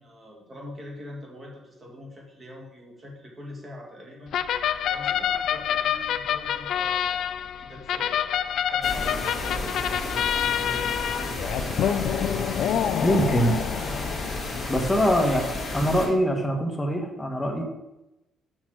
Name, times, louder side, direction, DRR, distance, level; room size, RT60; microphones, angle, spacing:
voice 1, 0.0-4.3 4.9-12.1 13.3-14.1 15.2-15.5, equal, 25° right, -1 dB, 1.9 m, -43 dB
sound 1, 4.3-14.7, left 9 dB, 55° left, 0.4 m, -27 dB
sound 2, 8.8-16.1, left 2 dB, 25° left, 2.0 m, -32 dB
voice 2, 13.0-13.6 14.7-15.4 15.7-17.6, equal, 5° left, 1 dB, 1.1 m, -23 dB
6.3 x 6.0 x 6.1 m, 0.95 s
cardioid pair, 170°, 0 cm